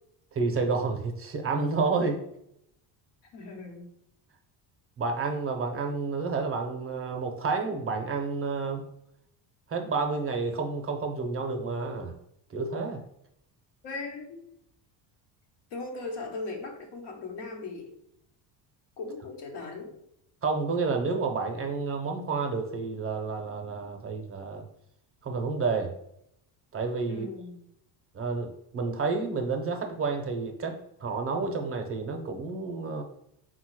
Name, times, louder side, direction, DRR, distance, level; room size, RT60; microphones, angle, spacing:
voice 1, 0.3-2.2 5.0-8.8 9.7-12.1 12.5-13.0 20.4-24.6 25.2-25.9 26.7-27.3 28.1-33.0, right 4 dB, 30° right, 4 dB, 0.6 m, -30 dB
voice 2, 3.3-3.8 13.8-14.4 15.7-17.9 19.0-20.0 27.1-27.6, left 3 dB, 70° left, 2 dB, 1.1 m, -38 dB
3.9 x 2.3 x 4.5 m, 0.76 s
cardioid pair, 115°, 46 cm